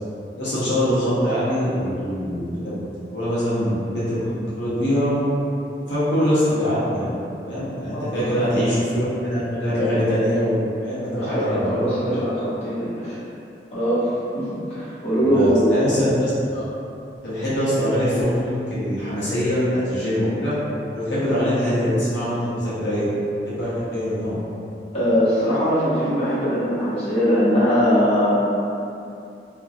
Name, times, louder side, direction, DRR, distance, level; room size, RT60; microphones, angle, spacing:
voice 1, 0.4-2.8 3.1-5.3 5.9-7.1 7.5-11.9 15.2-16.6 17.2-20.5 20.9-23.1 23.4-24.4, equal, 85° left, -10 dB, 0.7 m, -23 dB
voice 2, 7.9-8.4 11.0-13.2 13.7-15.8 24.9-28.3, equal, 35° left, -13 dB, 0.9 m, -21 dB
2.2 x 2.1 x 2.5 m, 2.6 s
head